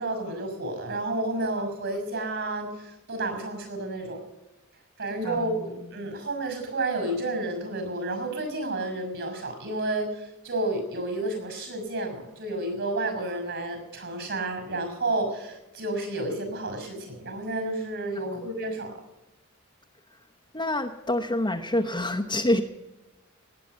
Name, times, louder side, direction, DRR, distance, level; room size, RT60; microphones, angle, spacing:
voice 1, 0.0-4.2 5.0-19.0, right 2 dB, 60° right, 7 dB, 6.4 m, -31 dB
voice 2, 5.2-5.6 18.1-18.5 20.5-22.6, left 1 dB, 20° left, -1 dB, 1.0 m, -27 dB
19.0 x 9.2 x 8.2 m, 1.0 s
head